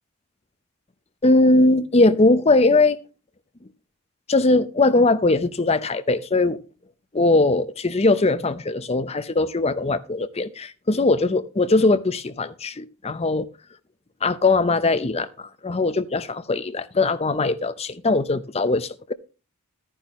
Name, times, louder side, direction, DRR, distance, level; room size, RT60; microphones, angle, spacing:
voice 1, 1.2-3.0 4.3-6.6 7.1-13.5 14.2-19.1, left 2 dB, 30° left, 0.6 m, -20 dB
12.5 x 10.0 x 3.0 m
head